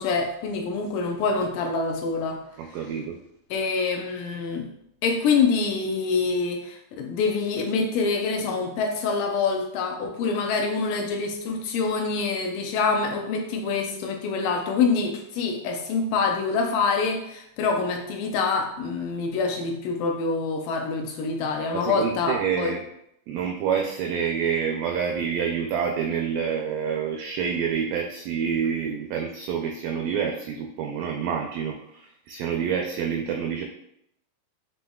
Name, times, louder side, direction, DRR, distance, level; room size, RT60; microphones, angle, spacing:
voice 1, 0.0-2.4 3.5-4.7 5.0-22.8, left 4 dB, 80° left, 2 dB, 2.0 m, -26 dB
voice 2, 2.6-3.2 21.7-22.8 23.3-33.6, right 7 dB, 85° right, 1 dB, 1.9 m, -27 dB
7.7 x 2.7 x 2.3 m, 0.77 s
omnidirectional pair, 4.3 m